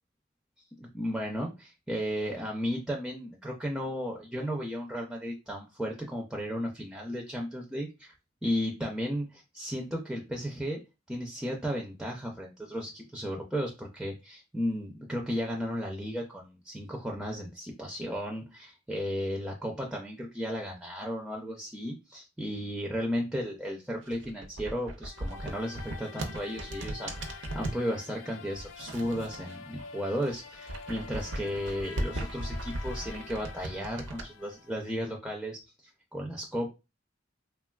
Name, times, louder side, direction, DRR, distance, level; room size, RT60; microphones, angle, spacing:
voice 1, 0.8-8.1 8.4-10.8 11.1-36.7, equal, ahead, 0 dB, 0.4 m, -34 dB
sound 1, 24.0-27.8 28.5-29.8 30.2-34.3, right 1 dB, 70° right, 0.5 m, -37 dB
sound 2, 25.0-35.0, left 6 dB, 90° left, 0.3 m, -47 dB
3.0 x 2.3 x 2.2 m, 0.26 s
head